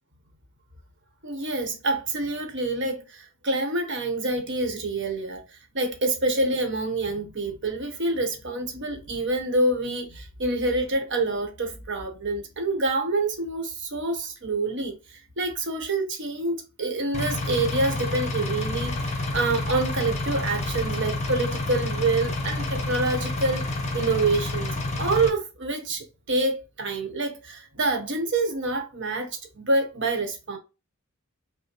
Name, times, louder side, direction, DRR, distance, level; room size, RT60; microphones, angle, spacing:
voice 1, 1.2-5.4 5.7-14.9 15.4-30.6, right 2 dB, 60° right, 1.1 m, -27 dB
Engine, 17.1-25.3, left 2 dB, 30° left, 0.9 m, -29 dB
5.5 x 2.2 x 3.0 m
head